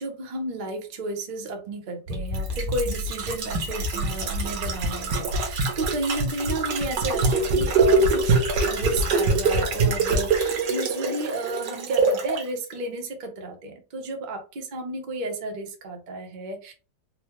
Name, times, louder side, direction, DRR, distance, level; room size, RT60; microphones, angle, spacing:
voice 1, 0.0-8.4 8.6-16.7, right 2 dB, 45° right, 4 dB, 0.6 m, -32 dB
sound 1, 2.1-12.4 12.7-12.8, right 3 dB, 70° right, 1.4 m, -24 dB
4.2 x 2.1 x 2.9 m, 0.32 s
omnidirectional pair, 1.9 m